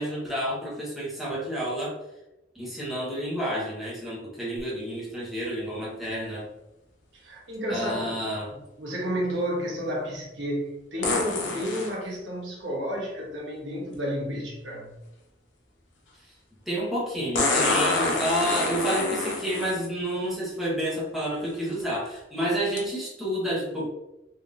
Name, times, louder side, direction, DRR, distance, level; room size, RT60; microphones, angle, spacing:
voice 1, 0.0-1.9 2.5-6.5 7.7-8.5 16.7-23.9, equal, ahead, -7 dB, 1.1 m, -29 dB
sound 1, 4.6-4.7 11.0-11.9 13.9-14.0 17.3-19.8 20.8-20.9 21.5-21.8 22.8-22.9, left 3 dB, 75° left, 0.8 m, -26 dB
voice 2, 7.1-8.1 8.5-14.9, equal, 85° right, -2 dB, 1.1 m, -31 dB
3.5 x 3.0 x 2.5 m, 0.94 s
head